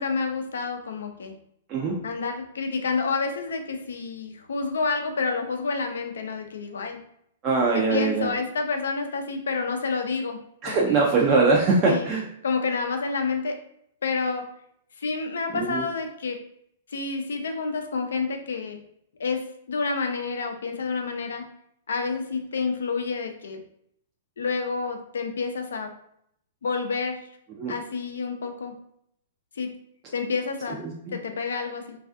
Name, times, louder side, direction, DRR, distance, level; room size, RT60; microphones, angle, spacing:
voice 1, 0.0-1.4 2.0-7.0 7.7-10.4 10.7-11.0 11.9-12.1 12.4-13.6 14.0-14.4 15.0-16.4 16.9-18.8 19.2-21.4 21.9-23.6 24.4-25.9 26.6-27.2 27.7-28.7 29.6-29.7 30.1-30.8 31.1-32.0, left 4 dB, 75° left, 5 dB, 0.4 m, -29 dB
voice 2, 1.7-2.0 7.4-8.3 10.6-12.2 15.5-15.8 27.6-27.7 30.8-30.9, right 3 dB, 35° right, -3 dB, 0.4 m, -22 dB
2.4 x 2.3 x 2.4 m, 0.70 s
hypercardioid pair, 115°, 0 cm